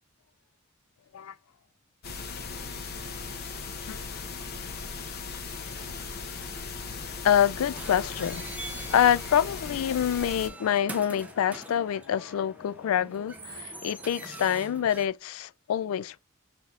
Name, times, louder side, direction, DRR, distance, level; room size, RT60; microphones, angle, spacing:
sound 1, 2.0-10.5, left 4 dB, 45° left, 0.7 m, -38 dB
voice 1, 7.2-8.5 8.9-16.2, left 9 dB, 80° left, 0.3 m, -26 dB
sound 2, 7.7-15.1, right 2 dB, 5° right, 0.5 m, -44 dB
5.6 x 3.4 x 2.4 m
head